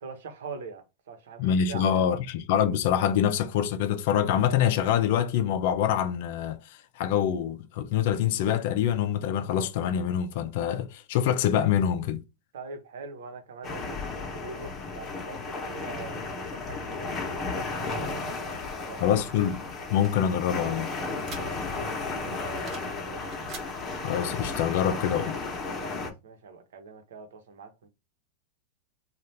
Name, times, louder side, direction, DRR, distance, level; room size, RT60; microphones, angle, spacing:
voice 1, 0.0-2.0 12.5-19.0 21.4-23.4 25.8-27.9, right 4 dB, 80° right, 1.0 m, -43 dB
voice 2, 1.4-12.2 19.0-19.6 19.9-20.9 24.0-25.4, left 9 dB, 60° left, 0.4 m, -25 dB
sound 1, 13.6-26.1, left 3 dB, 25° left, 0.9 m, -34 dB
sound 2, 19.4-21.9 22.2-23.0 23.2-23.7, right 5 dB, 35° right, 1.1 m, -46 dB
2.8 x 2.4 x 3.3 m
supercardioid pair, 140°, 0 cm